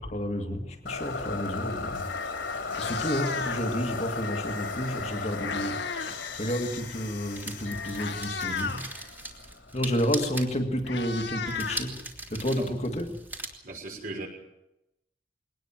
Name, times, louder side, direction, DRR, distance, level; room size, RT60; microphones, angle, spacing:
voice 1, 0.0-2.1 2.8-8.8 9.7-12.0 12.3-13.2, equal, 35° left, 3 dB, 2.2 m, -31 dB
sound 1, 0.9-9.9, left 4 dB, 90° left, 4.1 m, -36 dB
Meow, 2.1-2.2 2.6-3.8 4.9-6.2 6.5-6.8 7.5-7.6 7.9-8.9 10.2-10.3 10.5-12.4, left 5 dB, 75° left, 2.1 m, -35 dB
sound 2, 5.9-13.5, right 1 dB, 10° right, 2.9 m, -41 dB
voice 2, 13.6-14.3, right 2 dB, 50° right, 2 dB, 6.1 m, -37 dB
22.5 x 19.0 x 7.5 m, 0.88 s
head